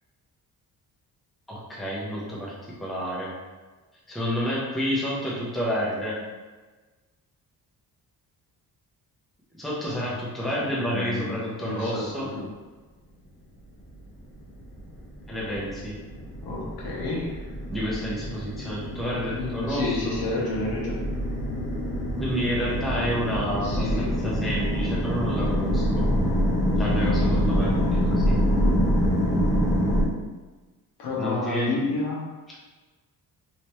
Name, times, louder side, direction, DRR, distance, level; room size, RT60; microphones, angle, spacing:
voice 1, 1.5-2.5 2.8-3.3 4.1-6.2 9.5-12.3 15.3-16.0 17.7-20.1 22.2-26.1 26.8-28.4 31.2-31.7, equal, ahead, -6 dB, 0.6 m, -29 dB
voice 2, 10.4-12.4 16.4-17.4 19.3-21.0 23.6-24.4 28.6-28.9 31.0-32.3, left 2 dB, 75° left, -4 dB, 1.1 m, -31 dB
sound 1, 14.6-30.0, equal, 40° left, 1.5 m, -25 dB
3.2 x 3.0 x 3.0 m, 1.3 s
cardioid pair, 170°, 37 cm